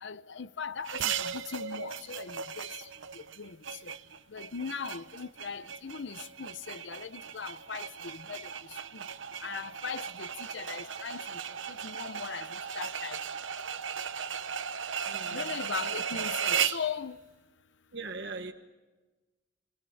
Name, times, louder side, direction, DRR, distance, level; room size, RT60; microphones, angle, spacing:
voice 1, 0.0-2.7 3.1-3.6 3.8-3.9 4.3-8.5 8.9-9.0 9.4-13.2 15.3-17.2, left 6 dB, 70° left, 0.8 m, -39 dB
sound 1, 0.8-16.9, right 7 dB, 85° right, 0.9 m, -36 dB
voice 2, 15.0-15.6 17.9-18.5, right 3 dB, 60° right, 1.3 m, -40 dB
28.0 x 22.5 x 7.1 m
head